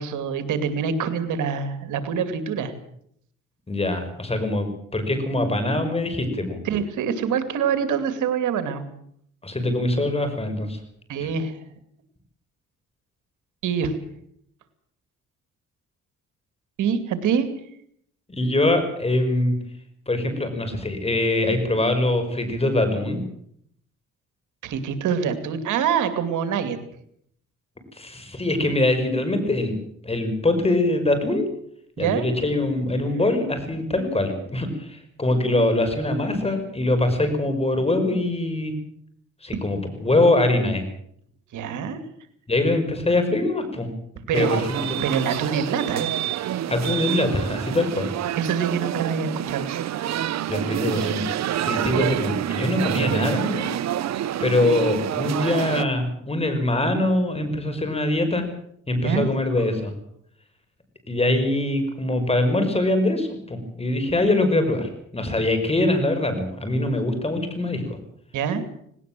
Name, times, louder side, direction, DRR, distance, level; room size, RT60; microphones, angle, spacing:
voice 1, 0.0-2.7 6.6-8.8 11.1-11.6 13.6-14.0 16.8-17.5 24.6-26.8 32.0-32.3 41.5-42.0 44.3-44.6 45.0-46.1 48.4-49.7 59.0-59.3 68.3-68.6, right 7 dB, 80° right, 10 dB, 2.5 m, -25 dB
voice 2, 3.7-6.6 9.4-10.8 11.2-11.3 18.3-19.6 20.1-23.2 27.9-29.7 30.0-31.5 32.0-38.7 39.4-40.8 42.5-43.9 44.3-45.0 46.7-48.1 50.5-51.2 51.5-53.7 54.4-58.5 58.9-59.9 61.1-68.0, left 2 dB, 20° left, 7 dB, 5.8 m, -23 dB
sound 1, 44.3-55.8, right 11 dB, 60° right, 0.9 m, -27 dB
19.0 x 18.5 x 7.6 m, 0.68 s
cardioid pair, 90°, 30 cm